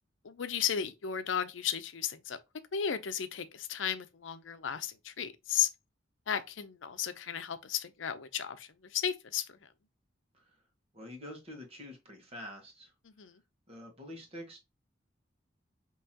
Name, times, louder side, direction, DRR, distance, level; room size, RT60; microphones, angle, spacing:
voice 1, 0.2-2.4 2.7-5.7 6.3-9.4 13.1-13.3, left 8 dB, 85° left, 0.6 m, -34 dB
voice 2, 10.9-12.9 13.7-14.6, left 1 dB, 30° right, 1.5 m, -46 dB
5.6 x 3.0 x 2.8 m
head